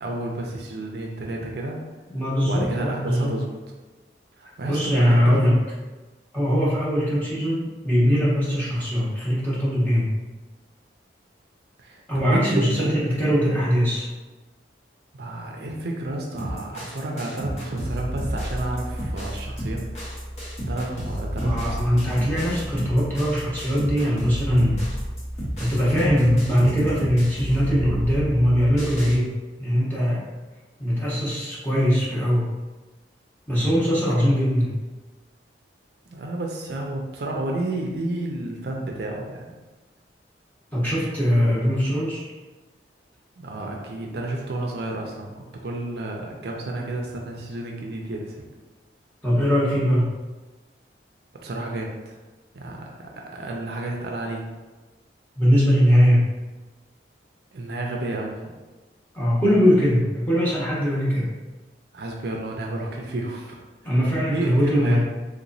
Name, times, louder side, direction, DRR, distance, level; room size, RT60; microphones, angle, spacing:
voice 1, 0.0-1.8 2.4-3.5 4.4-5.4 11.8-12.0 12.3-13.0 15.1-19.8 20.7-21.9 34.1-34.2 36.1-39.5 41.4-41.5 43.4-48.4 51.4-52.2 52.5-54.4 57.5-58.3 61.9-63.6 64.1-65.0, right 2 dB, 60° right, 0 dB, 0.4 m, -31 dB
voice 2, 2.1-3.4 4.6-5.6 6.3-10.1 12.1-14.1 21.4-24.8 25.6-29.3 29.6-30.2 30.8-32.5 33.5-34.7 40.7-42.2 49.2-50.1 55.4-56.2 59.1-61.3 63.8-65.0, equal, 10° left, -8 dB, 0.9 m, -21 dB
sound 1, 16.4-29.2, equal, 40° left, 1.0 m, -31 dB
3.5 x 2.9 x 2.6 m, 1.2 s
head